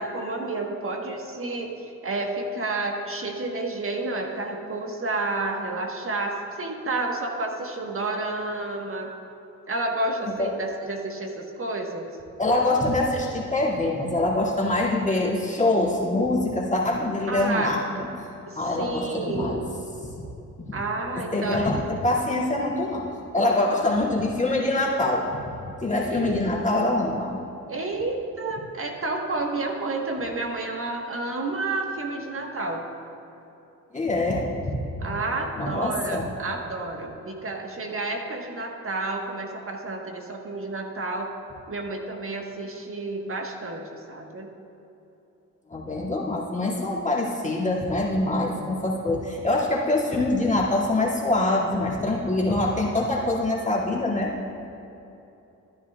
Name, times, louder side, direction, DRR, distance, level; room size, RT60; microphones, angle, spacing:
voice 1, 0.0-9.1 9.7-12.0 17.3-17.7 18.4-19.7 20.7-21.7 26.1-26.4 27.7-32.9 35.0-41.3 41.7-44.5, right 2 dB, 40° right, 2 dB, 1.4 m, -30 dB
voice 2, 12.4-18.1 18.6-19.6 20.2-20.3 21.3-23.1 23.3-27.4 33.9-34.5 35.6-36.3 45.7-54.3, left 2 dB, 20° left, -5 dB, 2.3 m, -24 dB
13.0 x 10.5 x 2.4 m, 2.9 s
supercardioid pair, 65°, 33 cm